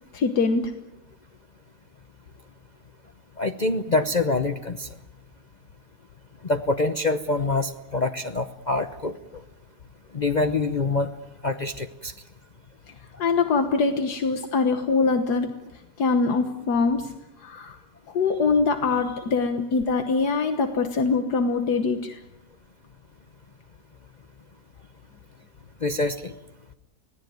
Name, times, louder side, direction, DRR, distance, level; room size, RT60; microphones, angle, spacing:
voice 1, 0.1-0.7 13.2-15.5 16.0-17.1 17.4-17.8 18.1-22.2, left 4 dB, 80° left, 7 dB, 1.8 m, -23 dB
voice 2, 3.4-4.9 6.4-9.2 10.1-11.1 11.4-12.1 25.8-26.3, left 2 dB, 35° left, 6 dB, 0.8 m, -25 dB
25.5 x 17.5 x 9.4 m, 0.95 s
omnidirectional pair, 1.7 m